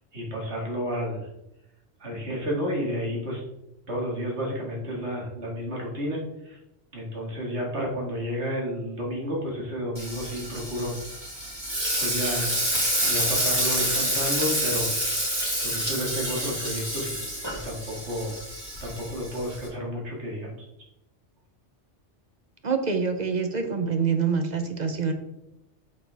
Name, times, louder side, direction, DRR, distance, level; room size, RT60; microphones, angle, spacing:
voice 1, 0.1-1.3 2.0-3.4 3.9-6.6 6.9-10.9 12.0-12.5 13.0-14.9 15.6-17.2 17.5-18.3 18.8-20.5, equal, 70° right, -2 dB, 2.3 m, -31 dB
Frying (food), 10.0-19.7, right 1 dB, 20° right, 2.4 m, -28 dB
voice 2, 22.6-25.1, right 5 dB, 45° right, 6 dB, 0.8 m, -26 dB
7.8 x 6.4 x 3.5 m, 0.88 s
omnidirectional pair, 1.2 m